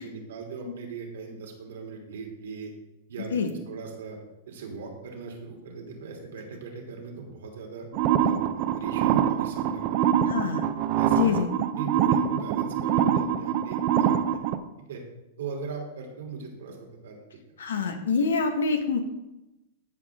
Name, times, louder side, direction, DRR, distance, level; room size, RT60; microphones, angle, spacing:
voice 1, 0.0-2.7 3.1-4.2 4.5-7.9 8.2-10.5 11.0-11.5 11.7-14.4 14.9-15.0 15.4-17.2, right 4 dB, 80° right, 0 dB, 2.9 m, -39 dB
sound 1, 7.9-14.6, right 9 dB, 50° right, 0.7 m, -24 dB
voice 2, 10.3-10.6 11.2-11.5 17.6-19.0, left 5 dB, 90° left, 6 dB, 1.4 m, -25 dB
14.0 x 5.6 x 3.7 m, 0.95 s
hypercardioid pair, 125°, 0 cm